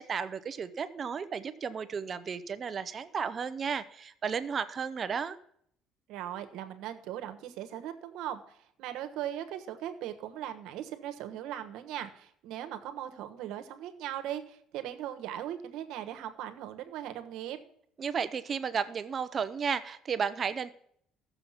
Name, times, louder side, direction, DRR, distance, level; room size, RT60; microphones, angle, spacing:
voice 1, 0.0-5.4 18.0-20.7, right 6 dB, 30° right, 13 dB, 0.6 m, -33 dB
voice 2, 6.1-17.6, right 11 dB, 75° right, 8 dB, 1.2 m, -39 dB
15.0 x 6.9 x 5.7 m, 0.68 s
cardioid pair, 140°, 0 cm